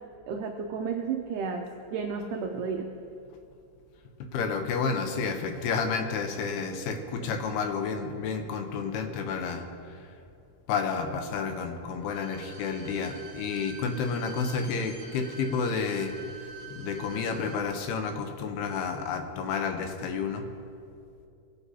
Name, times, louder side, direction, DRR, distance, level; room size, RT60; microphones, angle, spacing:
voice 1, 0.3-2.9, right 5 dB, 90° right, 3 dB, 1.8 m, -32 dB
voice 2, 4.2-10.0 10.7-16.1 16.7-20.5, left 5 dB, 85° left, 5 dB, 2.8 m, -30 dB
Bowed string instrument, 12.0-17.6 17.9-18.0, right 4 dB, 45° right, 1.3 m, -46 dB
20.0 x 8.2 x 2.8 m, 2.5 s
omnidirectional pair, 4.5 m